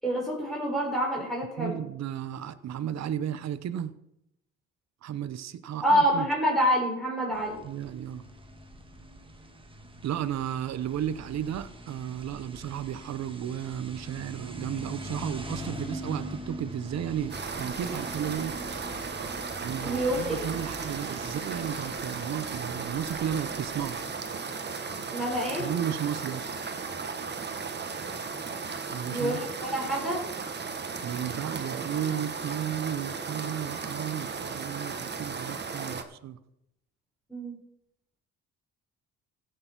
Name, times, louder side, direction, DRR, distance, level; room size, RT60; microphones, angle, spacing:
voice 1, 0.0-1.8 5.8-7.6 19.8-20.5 25.1-25.7 29.1-30.2 37.3-37.5, equal, ahead, 4.5 m, -27 dB
voice 2, 1.6-3.9 5.0-6.3 7.6-8.3 10.0-18.6 19.6-24.0 25.6-26.5 28.9-29.4 31.0-36.4, right 9 dB, 60° right, 0.9 m, -33 dB
sound 1, 7.3-24.0, right 1 dB, 15° right, 1.9 m, -43 dB
sound 2, 17.3-36.0, right 5 dB, 35° right, 1.3 m, -36 dB
15.5 x 6.7 x 6.0 m
cardioid pair, 90°, 30 cm